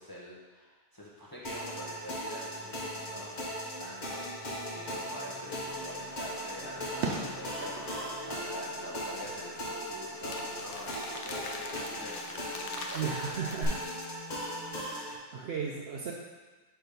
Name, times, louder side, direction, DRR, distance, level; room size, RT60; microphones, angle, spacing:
voice 1, 0.0-10.9 11.2-13.0, equal, 20° left, -5 dB, 0.8 m, -46 dB
sound 1, 1.4-15.2, equal, 40° left, 1.1 m, -38 dB
Fireworks, 5.7-13.7, right 3 dB, 85° right, 1.0 m, -43 dB
Crumpling crinkling, 10.3-14.9, left 4 dB, 85° left, 0.9 m, -45 dB
voice 2, 12.9-13.9 14.8-16.1, right 6 dB, 70° right, -2 dB, 0.8 m, -36 dB
6.0 x 3.4 x 5.1 m, 1.3 s
omnidirectional pair, 1.2 m